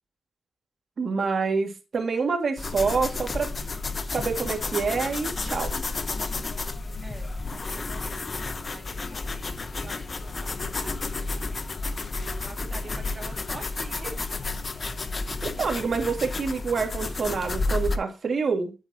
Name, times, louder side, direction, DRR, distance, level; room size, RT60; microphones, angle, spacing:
voice 1, 1.0-3.5 4.1-5.7 15.4-18.7, right 5 dB, 60° right, 3 dB, 2.4 m, -27 dB
sound 1, 2.6-18.0, left 3 dB, 45° left, 0.9 m, -31 dB
voice 2, 7.0-7.3 7.7-8.4 8.6-8.9 9.7-11.6 12.1-14.2, right 3 dB, 45° right, 1 dB, 2.4 m, -45 dB
9.0 x 8.8 x 3.0 m, 0.30 s
cardioid pair, 70°, 0 cm